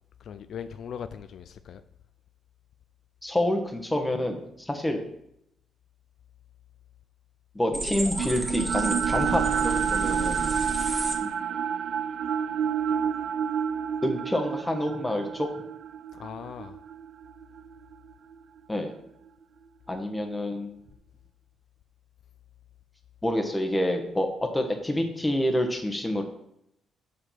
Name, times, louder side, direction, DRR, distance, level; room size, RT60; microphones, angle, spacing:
voice 1, 0.2-1.8 16.1-16.8, left 8 dB, 65° left, 0.4 m, -39 dB
voice 2, 3.2-5.0 7.5-10.5 11.2-11.4 14.0-15.5 18.7-18.9 19.9-20.8 23.2-26.2, left 1 dB, 10° left, 1.4 m, -28 dB
sound 1, 7.7-11.2, right 2 dB, 25° right, 1.7 m, -32 dB
sound 2, 8.2-18.3, right 7 dB, 60° right, 0.4 m, -29 dB
6.4 x 5.0 x 5.8 m
cardioid pair, 90°, 0 cm